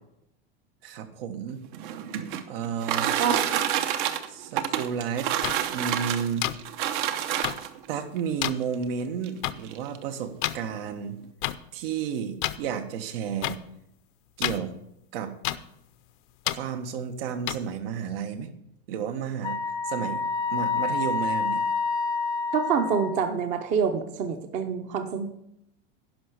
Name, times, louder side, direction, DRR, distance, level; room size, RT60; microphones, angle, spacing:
voice 1, 0.8-1.6 2.5-3.1 4.3-5.3 5.7-6.5 7.9-11.2 11.7-13.6 14.4-14.7 15.1-15.3 16.5-18.5 18.9-19.6 19.9-20.2 20.5-21.6, right 7 dB, 80° right, 8 dB, 1.5 m, -32 dB
sound 1, 1.6-7.9 8.7-8.8 9.2-9.3 9.6-10.0, right 10 dB, 60° right, 0.9 m, -28 dB
voice 2, 3.2-3.6 22.5-25.3, right 6 dB, 25° right, 8 dB, 0.7 m, -27 dB
sound 2, 5.4-5.5 6.4-6.5 7.4-7.5 8.4-8.5 9.4-9.5 10.4-10.6 11.4-11.5 12.4-12.6 13.4-13.5 14.4-14.6 15.4-15.6 16.4-16.6 17.5-17.6, left 17 dB, 60° left, 0.6 m, -27 dB
Wind instrument woodwind instrument, 19.4-23.3, left 4 dB, 15° left, 0.6 m, -28 dB
11.0 x 5.5 x 8.1 m, 0.79 s
supercardioid pair, 180°, 29 cm